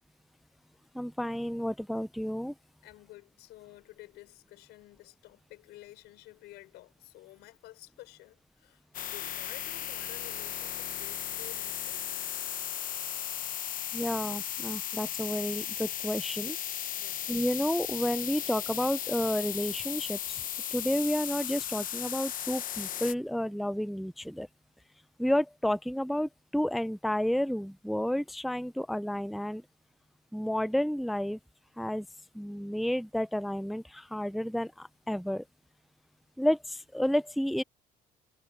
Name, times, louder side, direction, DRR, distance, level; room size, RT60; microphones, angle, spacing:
voice 1, 0.9-2.5 13.9-16.6 17.3-20.4 20.7-24.5 25.2-29.6 30.3-31.4 31.8-32.1 32.3-35.4 36.4-37.6, equal, ahead, 0.5 m, -31 dB
voice 2, 2.8-12.0 17.0-17.3, left 18 dB, 85° left, 5.9 m, -52 dB
sound 1, 8.9-23.1, left 10 dB, 55° left, 1.2 m, -36 dB
cardioid pair, 110°, 17 cm